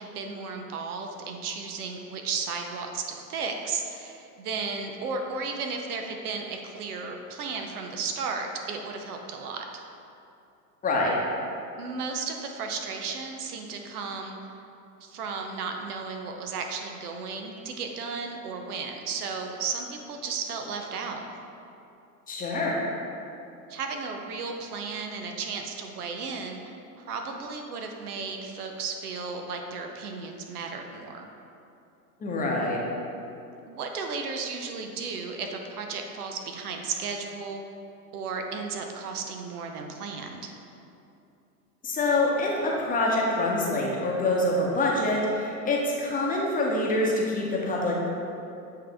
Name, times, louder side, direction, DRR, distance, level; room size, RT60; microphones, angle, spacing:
voice 1, 0.0-9.8 11.8-14.4 15.0-21.2 23.7-31.3 33.6-37.6 38.1-40.5, right 4 dB, 65° right, 3 dB, 0.8 m, -34 dB
voice 2, 10.8-11.1 22.3-22.8 32.2-32.8 41.8-48.0, left 2 dB, 15° left, -3 dB, 0.9 m, -25 dB
8.4 x 3.7 x 3.4 m, 2.7 s
hypercardioid pair, 95°, 48 cm